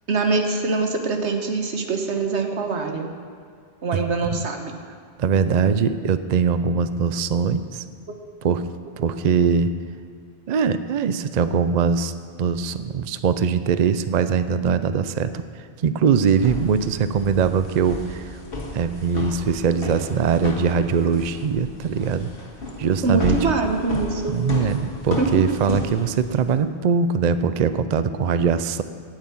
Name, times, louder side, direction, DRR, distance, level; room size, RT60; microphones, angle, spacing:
voice 1, 0.1-3.1 3.8-4.7 8.1-8.2 23.0-24.4 25.2-25.4, right 3 dB, 85° right, 4 dB, 1.4 m, -24 dB
voice 2, 3.9-4.5 5.2-7.8 8.4-8.6 9.0-9.7 10.5-12.1 12.4-18.3 18.7-22.3 22.8-23.5 24.3-28.8, right 6 dB, 50° right, 11 dB, 0.5 m, -22 dB
sound 1, 16.3-26.5, left 2 dB, 60° left, 1.8 m, -33 dB
9.2 x 9.0 x 8.5 m, 2.2 s
omnidirectional pair, 1.1 m